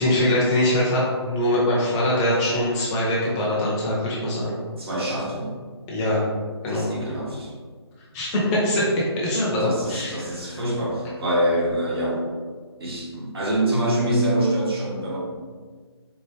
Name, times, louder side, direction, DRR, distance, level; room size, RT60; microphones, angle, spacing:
voice 1, 0.0-4.5 5.9-6.2 6.6-6.9 8.1-8.9 9.2-10.6, left 1 dB, 15° left, -6 dB, 0.8 m, -23 dB
voice 2, 4.8-5.5 6.7-7.5 9.6-12.2 12.8-15.2, right 1 dB, 60° right, -4 dB, 1.3 m, -25 dB
4.5 x 2.4 x 3.3 m, 1.5 s
hypercardioid pair, 160°, 14 cm